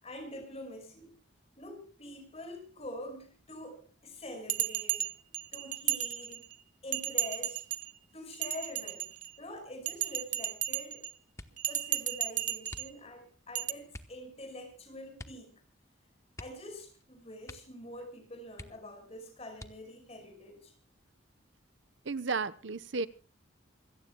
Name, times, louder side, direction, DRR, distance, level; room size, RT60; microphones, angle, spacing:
voice 1, 0.0-1.2 1.6-6.5 6.8-7.6 8.1-9.1 9.4-11.1 11.7-15.6 16.4-20.8, left 1 dB, 35° left, 5.2 m, -46 dB
Bell, 4.5-6.5 6.9-7.9 8.3-9.4 9.9-11.1 11.6-12.9 13.5-13.7, right 12 dB, 40° right, 0.6 m, -34 dB
sound 1, 11.3-11.8 12.6-13.3 13.9-14.2 15.1-15.5 15.8-15.9 16.3-17.1 17.4-17.8 18.1-18.2 18.5-19.1 19.5-20.1 20.8-21.4 21.8-22.2, left 1 dB, 15° left, 1.0 m, -49 dB
voice 2, 22.1-23.1, right 4 dB, 70° right, 1.0 m, -33 dB
27.5 x 17.0 x 2.3 m
head